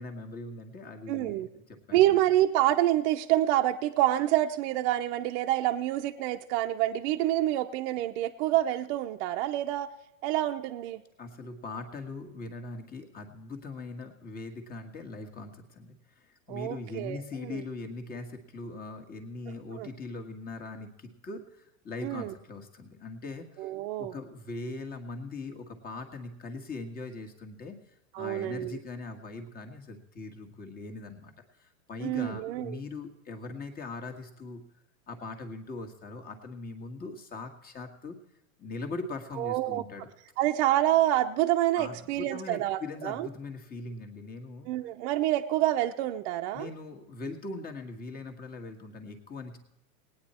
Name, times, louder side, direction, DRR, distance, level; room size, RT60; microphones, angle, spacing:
voice 1, 0.0-2.2 11.2-23.7 24.0-27.7 28.1-31.3 31.6-34.6 35.1-38.2 38.6-40.1 41.8-44.7 46.5-49.6, left 3 dB, 20° left, 6 dB, 1.7 m, -41 dB
voice 2, 1.1-1.5 1.9-9.9 10.2-11.0 16.5-17.6 19.7-19.9 22.0-22.3 23.6-24.1 28.1-28.8 32.0-32.8 39.3-39.8 40.4-43.3 44.7-46.7, right 14 dB, 50° right, 4 dB, 0.8 m, -27 dB
18.5 x 9.5 x 4.3 m, 0.88 s
supercardioid pair, 130°, 44 cm